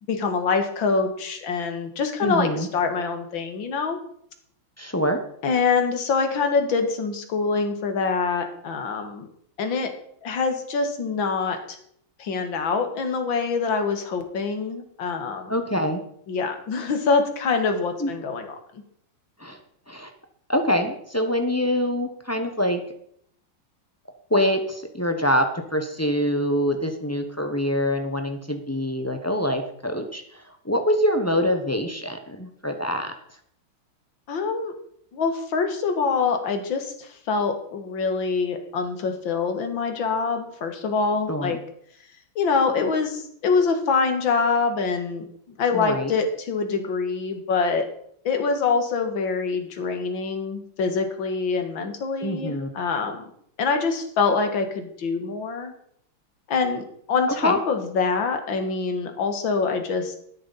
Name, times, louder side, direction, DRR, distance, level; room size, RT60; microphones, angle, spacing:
voice 1, 0.1-4.0 5.4-9.3 9.6-9.9 10.2-11.8 12.2-15.5 16.3-18.8 34.3-34.7 35.1-41.6 42.4-45.2 45.6-47.9 48.3-53.2 53.6-55.7 56.5-60.2, left 4 dB, 70° left, 6 dB, 2.2 m, -25 dB
voice 2, 2.2-2.7 4.8-5.2 15.5-16.0 18.0-18.1 19.4-19.6 19.9-20.1 20.5-22.8 24.3-33.1 41.3-41.6 45.7-46.1 52.2-52.7 57.4-57.6, equal, 20° left, 5 dB, 0.4 m, -25 dB
12.5 x 10.5 x 4.1 m, 0.67 s
omnidirectional pair, 2.3 m